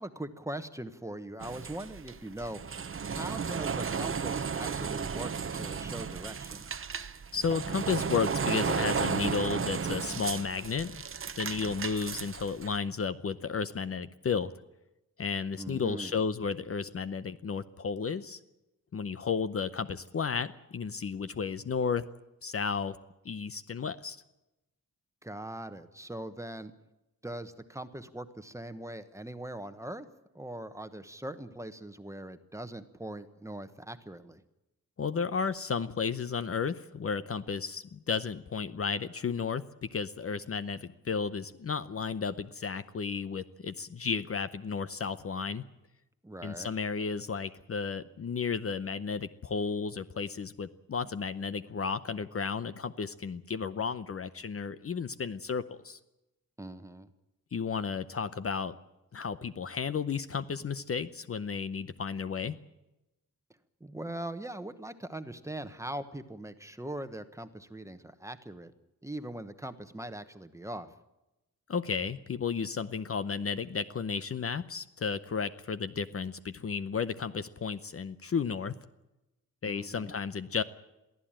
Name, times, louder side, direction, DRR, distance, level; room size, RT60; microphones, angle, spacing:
voice 1, 0.0-2.6 3.1-6.7 15.6-16.2 25.2-26.7 27.2-30.1 30.3-34.4 46.2-46.7 56.6-57.1 63.8-68.7 69.0-70.9 79.6-80.1, right 1 dB, 10° right, 10 dB, 1.1 m, -41 dB
sound 1, 1.4-12.8, right 6 dB, 40° right, 0.9 m, -34 dB
voice 2, 7.3-10.9 11.3-14.5 15.2-18.4 18.9-22.0 22.4-23.0 23.2-24.2 35.0-45.6 46.4-56.0 57.5-58.7 59.1-62.6 71.7-78.8 79.6-80.6, left 5 dB, 45° left, 13 dB, 0.7 m, -33 dB
23.0 x 15.5 x 8.9 m, 0.95 s
wide cardioid pair, 170°, 34 cm